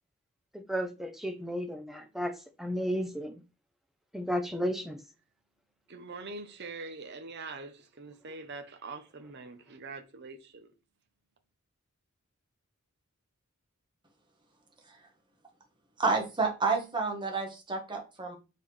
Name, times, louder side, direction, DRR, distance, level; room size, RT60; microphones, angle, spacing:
voice 1, 0.5-2.3 2.6-3.4 4.1-5.0, equal, ahead, 0.7 m, -33 dB
voice 2, 5.9-10.7, right 3 dB, 50° right, 0.8 m, -43 dB
voice 3, 16.0-18.4, right 4 dB, 20° right, 1.3 m, -30 dB
7.3 x 4.2 x 3.3 m
head